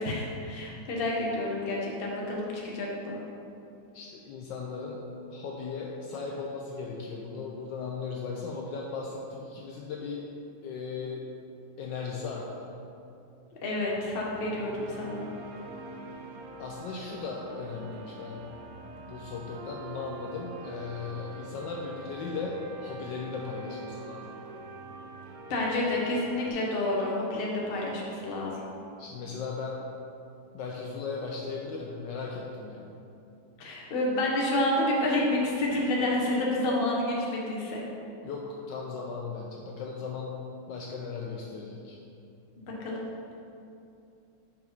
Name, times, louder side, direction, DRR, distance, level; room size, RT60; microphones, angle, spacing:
voice 1, 0.0-3.2 13.6-15.3 25.5-28.5 33.6-37.8 42.8-43.0, left 1 dB, 35° left, -3 dB, 0.9 m, -29 dB
voice 2, 3.9-5.0 5.3-10.3 10.6-11.3 11.8-12.7 16.6-18.5 19.0-24.4 29.0-29.8 30.5-32.9 38.2-42.0, left 4 dB, 75° left, -1 dB, 1.1 m, -37 dB
sound 1, 13.7-26.5, right 2 dB, 65° right, 0.9 m, -45 dB
5.3 x 4.8 x 5.2 m, 2.7 s
omnidirectional pair, 2.2 m